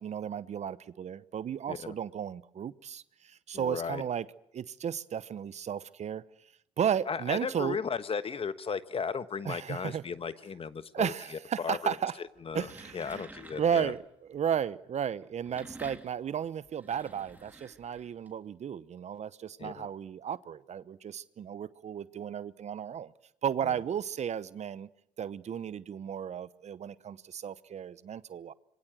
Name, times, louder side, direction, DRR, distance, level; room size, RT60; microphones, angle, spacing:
voice 1, 0.0-4.3 4.5-6.2 6.8-7.8 9.4-10.0 10.9-12.1 12.5-13.2 13.6-14.0 14.3-23.1 23.4-24.9 25.2-28.5, right 8 dB, 50° right, 0.9 m, -34 dB
voice 2, 3.5-4.0 7.1-12.0 12.4-13.9 19.6-19.9 23.6-23.8, left 6 dB, 40° left, 1.3 m, -36 dB
sound 1, 12.4-14.1 15.2-18.3, right 2 dB, 10° right, 3.5 m, -50 dB
26.0 x 21.5 x 7.6 m
hypercardioid pair, 60°, 15 cm